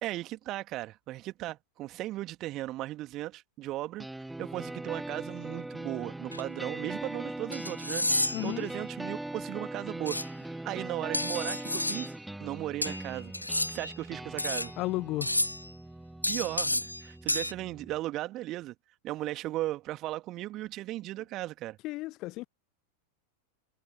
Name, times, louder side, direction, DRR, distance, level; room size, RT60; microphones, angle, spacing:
voice 1, 0.0-4.1 4.4-10.2 10.6-12.1 12.4-14.7 16.3-18.7 19.0-21.8, right 16 dB, 35° right, 2.0 m, -36 dB
sound 1, 4.0-18.0, right 1 dB, 5° right, 1.3 m, -41 dB
sound 2, 6.3-6.4 7.5-8.6 10.1-10.3 11.1-12.1 12.8-13.9 14.4-14.7 15.2-15.7 16.2-17.0 17.3-17.5, left 1 dB, 85° left, 1.2 m, -31 dB
voice 2, 8.3-8.7 14.8-15.3 21.8-22.5, left 20 dB, 40° left, 0.8 m, -33 dB
figure-of-eight pair, 90°, 0 cm